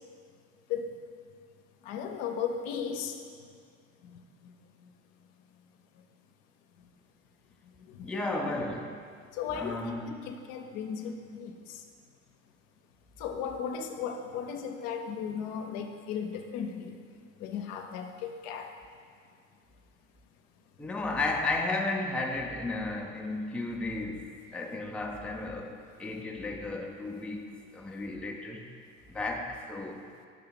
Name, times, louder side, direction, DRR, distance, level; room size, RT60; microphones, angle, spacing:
voice 1, 1.8-3.2 4.0-4.5 7.9-8.1 9.3-11.8 13.2-17.0 17.4-18.7, left 7 dB, 60° left, 4 dB, 0.7 m, -36 dB
voice 2, 8.0-9.0 9.5-10.2 20.8-27.5 27.7-28.6 29.1-30.0, left 2 dB, 5° left, 1 dB, 0.5 m, -34 dB
5.7 x 3.8 x 5.7 m, 2.2 s
hypercardioid pair, 65°, 40 cm